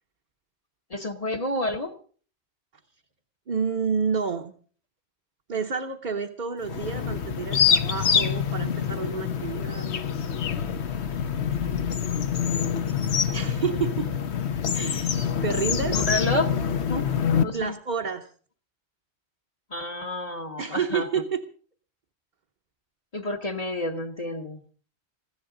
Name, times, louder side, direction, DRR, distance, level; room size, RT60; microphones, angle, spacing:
voice 1, 0.9-1.9 13.3-13.6 15.9-16.5 16.9-17.1 17.3-17.7 19.7-21.1 23.1-24.6, left 1 dB, 35° left, 3 dB, 1.2 m, -29 dB
voice 2, 3.5-4.5 5.5-9.9 13.3-14.1 14.7-16.0 17.5-18.3 20.6-21.4, right 6 dB, 45° right, 1 dB, 1.0 m, -29 dB
sound 1, 6.6-17.4, left 7 dB, 80° left, 1.2 m, -26 dB
21.0 x 15.5 x 3.8 m, 0.43 s
omnidirectional pair, 1.1 m